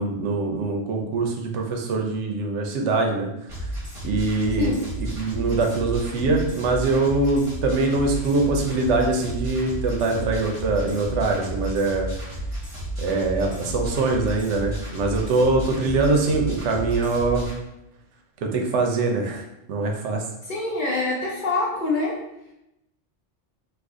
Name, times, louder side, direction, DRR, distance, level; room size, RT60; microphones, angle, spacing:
voice 1, 0.0-3.3 4.0-12.1 13.0-17.5 18.4-20.2, right 3 dB, 80° right, 2 dB, 0.9 m, -23 dB
sound 1, 3.5-17.5, right 1 dB, 30° right, 1.0 m, -32 dB
voice 2, 20.5-22.2, left 3 dB, 55° left, -3 dB, 0.6 m, -25 dB
2.5 x 2.5 x 3.5 m, 0.86 s
omnidirectional pair, 1.2 m